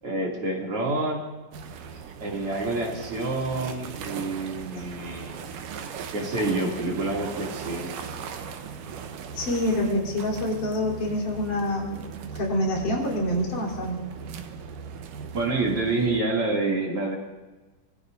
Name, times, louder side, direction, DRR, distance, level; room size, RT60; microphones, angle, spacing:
voice 1, 0.0-1.2 2.2-5.5 6.1-8.0 15.3-17.2, right 2 dB, 45° right, -2 dB, 3.4 m, -28 dB
sound 1, 1.5-16.2, right 6 dB, 80° right, 2.6 m, -38 dB
voice 2, 9.3-12.0 12.4-14.1, left 1 dB, 75° left, -3 dB, 5.3 m, -26 dB
25.5 x 21.5 x 2.7 m, 1.2 s
omnidirectional pair, 3.7 m